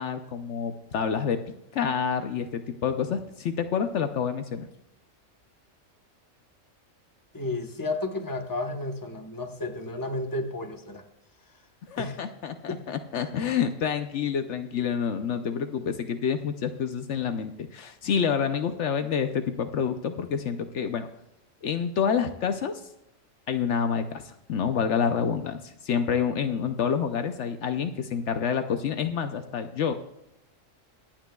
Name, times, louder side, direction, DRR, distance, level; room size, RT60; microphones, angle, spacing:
voice 1, 0.0-4.7 11.9-21.1 21.6-22.8 23.5-29.9, left 7 dB, 70° left, 8 dB, 1.0 m, -28 dB
voice 2, 7.3-11.0 12.0-12.1 12.7-12.8, left 2 dB, 15° left, 5 dB, 1.0 m, -32 dB
24.5 x 8.9 x 2.3 m, 0.86 s
omnidirectional pair, 1.3 m